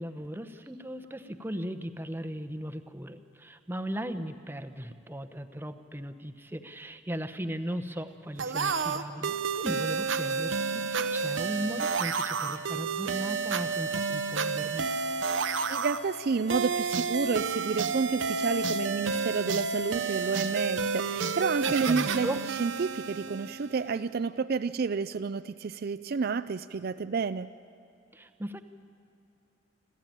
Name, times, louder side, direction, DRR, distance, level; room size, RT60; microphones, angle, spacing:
voice 1, 0.0-14.9 21.8-22.4 28.1-28.6, equal, 10° right, 9 dB, 0.9 m, -37 dB
sound 1, 8.4-23.9, right 5 dB, 90° right, 0.9 m, -30 dB
voice 2, 15.7-22.3 22.6-27.5, right 5 dB, 55° right, 12 dB, 0.4 m, -30 dB
28.5 x 13.5 x 9.0 m, 2.6 s
head